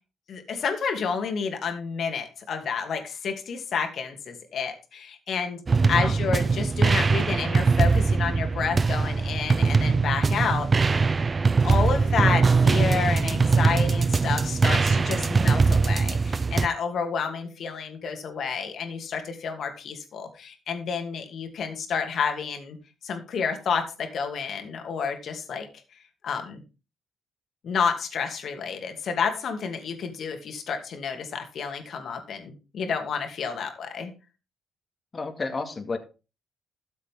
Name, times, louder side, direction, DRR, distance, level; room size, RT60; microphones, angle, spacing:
voice 1, 0.3-11.2 11.6-22.8 23.0-25.7 26.2-26.6 27.6-34.1, left 6 dB, 65° left, 5 dB, 2.6 m, -30 dB
sound 1, 5.7-16.7, right 4 dB, 35° right, 0.5 m, -22 dB
voice 2, 35.1-36.0, left 3 dB, 35° left, 5 dB, 2.3 m, -31 dB
13.5 x 7.3 x 3.8 m, 0.31 s
supercardioid pair, 70°, 0 cm